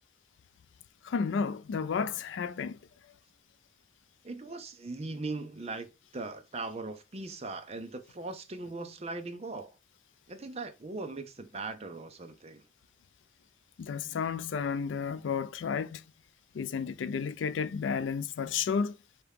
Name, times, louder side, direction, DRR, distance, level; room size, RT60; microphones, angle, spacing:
voice 1, 1.0-2.8 13.8-16.0 16.5-19.0, left 6 dB, 80° left, 0.4 m, -32 dB
voice 2, 4.2-9.8 10.3-12.6, right 3 dB, 35° right, 0.6 m, -39 dB
4.6 x 2.9 x 3.4 m
head